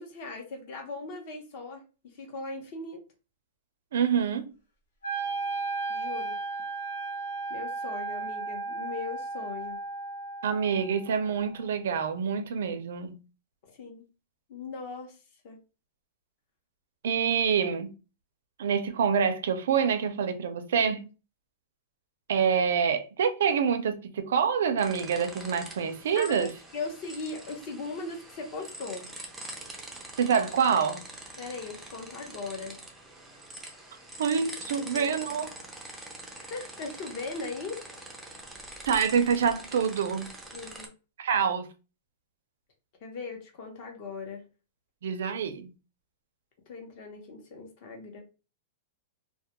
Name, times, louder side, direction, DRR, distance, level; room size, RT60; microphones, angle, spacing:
voice 1, 0.0-3.0 5.9-6.4 7.5-9.8 13.7-14.1 14.5-15.2 15.4-15.6 20.7-20.9 26.1-29.1 31.4-32.8 34.8-35.1 36.3-37.8 40.5-40.9 43.0-44.4 46.7-48.2, left 3 dB, 40° left, 0.7 m, -39 dB
voice 2, 3.9-4.5 10.4-13.1 17.0-17.9 18.6-21.0 22.3-26.5 30.2-31.0 34.2-35.5 38.9-40.3 41.2-41.7 45.0-45.7, right 7 dB, 75° right, 0.4 m, -26 dB
Wind instrument woodwind instrument, 5.0-11.1, right 3 dB, 70° left, 0.9 m, -34 dB
sound 1, 24.8-40.9, right 1 dB, 5° right, 0.4 m, -44 dB
2.2 x 2.1 x 2.9 m
supercardioid pair, 170°, 0 cm